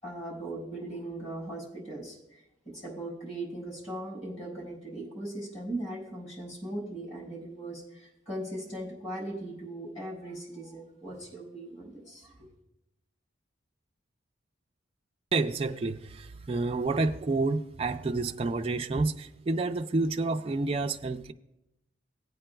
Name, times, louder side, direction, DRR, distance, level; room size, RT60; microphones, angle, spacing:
voice 1, 0.0-12.3, right 1 dB, 35° left, 4.2 m, -39 dB
voice 2, 15.3-21.3, right 3 dB, 30° right, 0.3 m, -29 dB
18.5 x 8.6 x 2.3 m
head